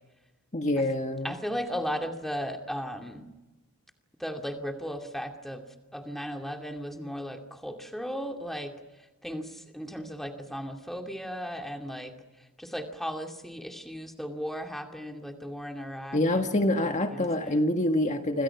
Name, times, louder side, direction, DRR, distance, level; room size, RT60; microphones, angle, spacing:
voice 1, 0.5-1.4 16.1-18.4, left 1 dB, 35° left, 5 dB, 1.6 m, -26 dB
voice 2, 1.2-3.3 4.2-5.6 5.9-8.7 9.2-12.1 12.6-16.6 16.8-17.7, equal, ahead, 3 dB, 2.5 m, -36 dB
29.5 x 26.5 x 6.0 m, 1.1 s
head